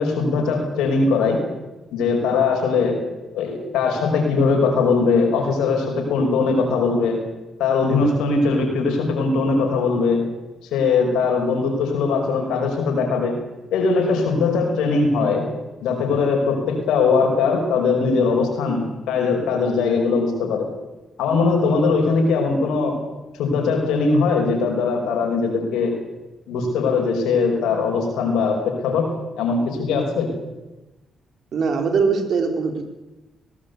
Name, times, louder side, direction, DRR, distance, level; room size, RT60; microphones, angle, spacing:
voice 1, 0.0-1.4 1.9-3.0 3.3-7.2 7.6-10.3 10.7-13.4 13.7-15.5 15.8-20.7 21.2-23.0 23.4-26.0 26.5-29.1 29.4-30.3, left 4 dB, 90° left, 3 dB, 5.3 m, -20 dB
voice 2, 31.5-32.8, right 5 dB, 65° right, 7 dB, 3.6 m, -21 dB
19.5 x 17.5 x 8.3 m, 1.1 s
supercardioid pair, 60°, 0 cm